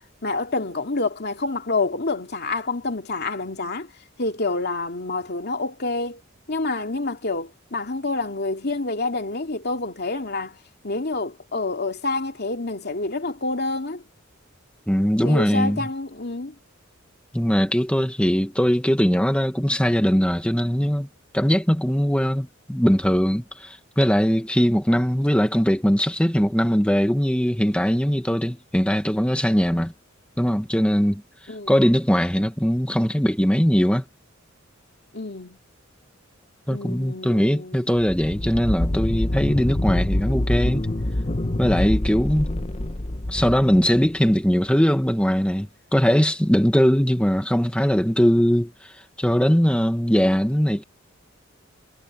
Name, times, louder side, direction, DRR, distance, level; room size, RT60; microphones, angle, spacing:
voice 1, 0.2-3.9 4.2-6.2 6.5-10.6 10.8-14.0 15.2-16.5 31.5-31.8 35.1-35.6 36.7-37.8, left 3 dB, 55° left, 2.7 m, -28 dB
voice 2, 14.9-15.9 17.3-21.1 21.3-29.9 30.4-31.2 31.7-34.0 36.7-40.9 41.6-42.5 43.3-50.8, equal, 5° left, 1.8 m, -20 dB
sound 1, 38.1-44.4, left 1 dB, 30° left, 1.0 m, -26 dB
head